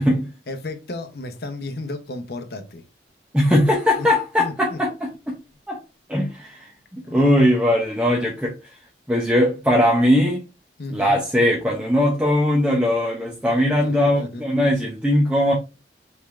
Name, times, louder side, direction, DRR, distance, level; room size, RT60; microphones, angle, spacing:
voice 1, 0.5-2.8 4.0-4.1 4.4-4.8 7.0-7.2 10.8-11.2 13.6-14.4, left 2 dB, 60° left, 0.8 m, -33 dB
voice 2, 3.3-5.4 5.7-5.8 6.1-8.6 9.1-10.4 10.9-15.5, left 1 dB, 5° right, 0.6 m, -20 dB
5.3 x 3.3 x 2.4 m
head